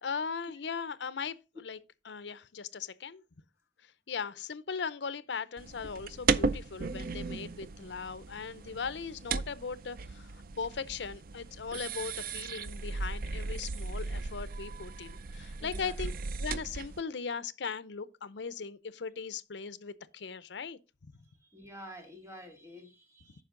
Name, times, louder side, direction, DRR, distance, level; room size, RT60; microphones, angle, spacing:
voice 1, 0.0-1.4 1.6-1.8 2.1-3.2 4.1-10.3 10.6-16.1 16.4-20.8, left 5 dB, 70° left, 0.6 m, -38 dB
sound 1, 5.6-17.0, right 4 dB, 55° right, 0.5 m, -36 dB
voice 2, 15.6-16.0 21.4-23.4, equal, 15° right, 2.1 m, -49 dB
9.2 x 5.8 x 3.7 m
head